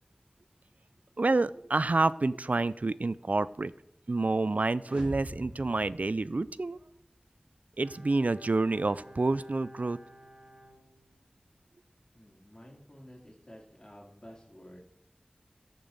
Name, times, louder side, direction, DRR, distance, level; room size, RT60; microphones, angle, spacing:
voice 1, 1.2-3.7 4.1-6.8 7.8-10.0, right 3 dB, 70° right, 17 dB, 0.4 m, -28 dB
sound 1, 4.8-6.9, equal, 45° right, 3.7 m, -44 dB
Bowed string instrument, 7.8-11.6 11.9-12.0, right 1 dB, 20° right, 2.7 m, -53 dB
voice 2, 12.1-14.9, equal, 35° left, -1 dB, 3.0 m, -51 dB
14.0 x 6.7 x 4.0 m, 0.77 s
wide cardioid pair, 45°, 3 cm